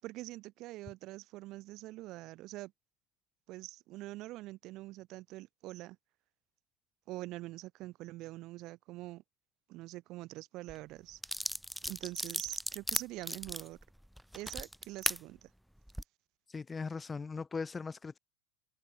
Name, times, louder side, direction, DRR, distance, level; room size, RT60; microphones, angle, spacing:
voice 1, 0.0-2.7 3.5-6.0 7.1-9.2 9.7-11.2 11.9-13.8 14.3-15.5, right 18 dB, 50° right, 5.9 m, -44 dB
sound 1, 10.7-10.8 11.2-15.2 15.8-16.0, equal, ahead, 1.1 m, -36 dB
voice 2, 16.5-18.2, left 4 dB, 15° left, 2.5 m, -39 dB
supercardioid pair, 120°, 0 cm